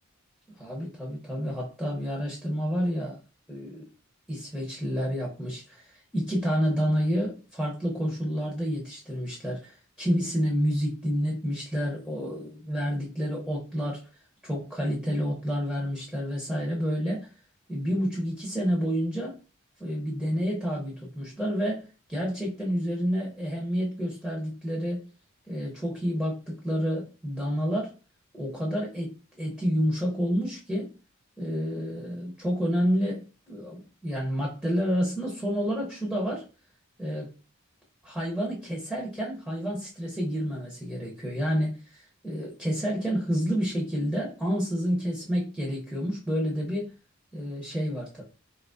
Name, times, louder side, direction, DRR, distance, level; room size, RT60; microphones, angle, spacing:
voice 1, 0.6-3.2 3.5-3.8 4.3-14.0 14.4-17.3 17.7-19.3 19.8-25.1 25.5-27.9 28.3-30.9 31.4-36.4 37.0-37.3 38.0-46.9 47.3-48.2, equal, ahead, -3 dB, 0.8 m, -29 dB
4.6 x 2.8 x 2.6 m, 0.34 s
head